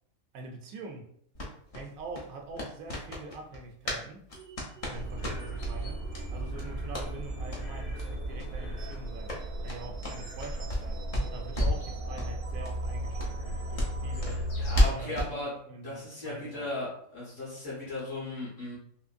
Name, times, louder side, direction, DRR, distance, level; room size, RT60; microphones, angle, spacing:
voice 1, 0.3-1.1 1.7-4.3 4.9-11.0 11.3-14.5 14.8-15.4 15.6-16.7, right 3 dB, 75° right, 1.0 m, -44 dB
sound 1, 1.3-4.0 4.3-5.7 6.1-6.2 6.5-7.1 7.5-7.6 8.0-8.1 8.3-8.5 8.8-10.9 11.1-11.9 12.2-12.3 12.6-12.7 13.2-15.3, equal, 35° left, 0.6 m, -31 dB
sound 2, 4.3-14.3, right 3 dB, 55° right, 0.6 m, -50 dB
sound 3, 4.9-14.8, right 1 dB, 75° left, 1.4 m, -36 dB
voice 2, 14.6-15.5 15.8-18.8, left 2 dB, 60° left, 1.9 m, -37 dB
3.7 x 2.9 x 2.5 m
omnidirectional pair, 1.5 m